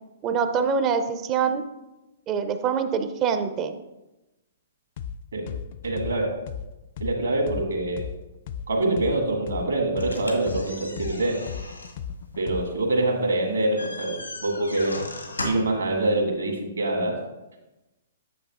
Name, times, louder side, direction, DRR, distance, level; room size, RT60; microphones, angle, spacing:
voice 1, 0.2-1.6 2.3-3.7, right 6 dB, 25° right, 9 dB, 0.5 m, -24 dB
sound 1, 5.0-5.1 5.5-9.1 9.5-12.9, left 8 dB, 45° left, 0.3 m, -35 dB
voice 2, 5.8-6.4 7.0-8.1 8.7-11.4 12.4-15.0 15.4-17.2, right 2 dB, 75° right, 1 dB, 1.8 m, -25 dB
sound 2, 10.0-15.8, left 2 dB, 85° left, 1.6 m, -37 dB
9.3 x 7.1 x 2.4 m, 1.0 s
figure-of-eight pair, 115°, 0 cm